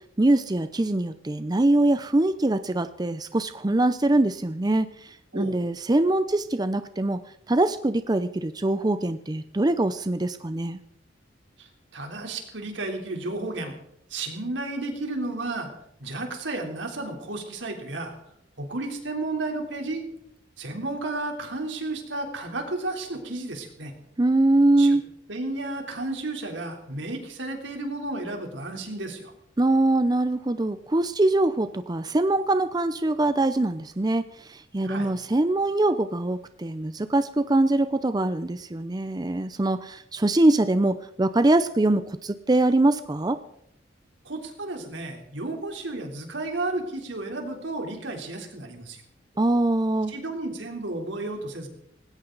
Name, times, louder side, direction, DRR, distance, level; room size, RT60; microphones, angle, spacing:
voice 1, 0.2-7.2 7.5-10.8 24.2-25.0 29.6-43.4 49.4-50.1, right 2 dB, 20° right, 11 dB, 0.5 m, -23 dB
voice 2, 11.6-13.8 14.1-15.7 16.0-18.1 18.6-20.0 20.6-23.9 24.8-25.0 25.3-29.3 34.8-35.1 44.3-49.0 50.1-51.7, right 2 dB, 80° right, 3 dB, 3.5 m, -32 dB
19.5 x 17.0 x 4.0 m, 0.74 s
head